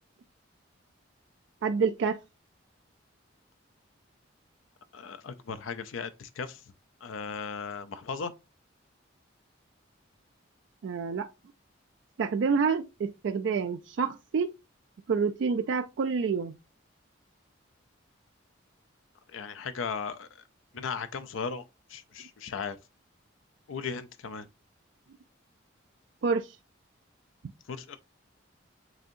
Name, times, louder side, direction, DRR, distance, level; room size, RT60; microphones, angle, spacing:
voice 1, 1.6-2.2 10.8-11.3 12.2-14.5 15.1-16.6 26.2-26.6, right 5 dB, 65° right, 0.3 m, -28 dB
voice 2, 4.9-6.6 7.0-8.3 19.3-20.3 20.7-21.6 21.9-22.8 23.7-24.5 27.7-28.0, left 5 dB, 85° left, 0.5 m, -36 dB
7.6 x 2.7 x 2.5 m
head